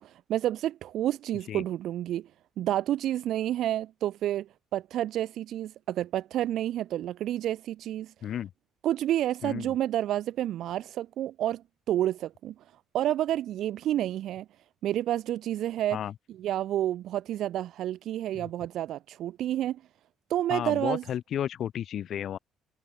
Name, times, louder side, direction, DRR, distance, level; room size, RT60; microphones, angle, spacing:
voice 1, 0.0-2.3 2.6-8.1 8.8-11.6 11.9-12.5 12.9-14.4 14.8-16.0 16.4-19.8 20.3-21.0, right 12 dB, 60° right, 1.4 m, -29 dB
voice 2, 9.4-9.7 15.9-16.1 18.3-18.5 20.5-22.4, left 10 dB, 45° left, 6.4 m, -33 dB
cardioid pair, 165°, 0 cm